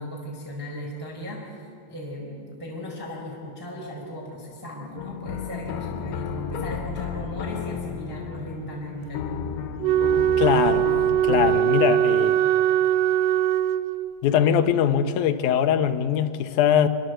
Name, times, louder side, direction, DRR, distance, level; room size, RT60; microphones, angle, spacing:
voice 1, 0.0-9.2, equal, 5° right, 3.6 m, -36 dB
sound 1, 5.0-11.6, left 8 dB, 85° left, 3.2 m, -33 dB
Wind instrument woodwind instrument, 9.8-14.2, right 11 dB, 75° right, 2.2 m, -21 dB
voice 2, 10.4-10.9 11.2-12.4 14.2-16.9, left 9 dB, 70° left, 2.0 m, -21 dB
25.0 x 24.5 x 7.9 m
omnidirectional pair, 4.7 m